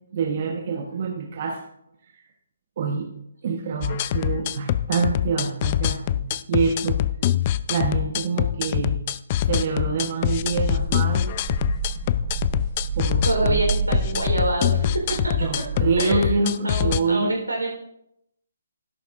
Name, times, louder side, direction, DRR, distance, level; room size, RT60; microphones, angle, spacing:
voice 1, 0.1-1.6 2.8-3.1 3.4-7.0 7.7-9.0 9.4-11.3 12.9-13.6 15.4-17.3, right 5 dB, 45° right, 2 dB, 1.1 m, -26 dB
sound 1, 3.8-17.0, left 12 dB, 35° left, 0.4 m, -24 dB
sound 2, 10.2-16.2, right 5 dB, 15° right, 4.6 m, -29 dB
voice 2, 13.2-15.3 16.0-17.7, right 2 dB, 85° right, 0 dB, 3.9 m, -26 dB
13.0 x 11.5 x 2.6 m, 0.78 s
figure-of-eight pair, 140°, 0 cm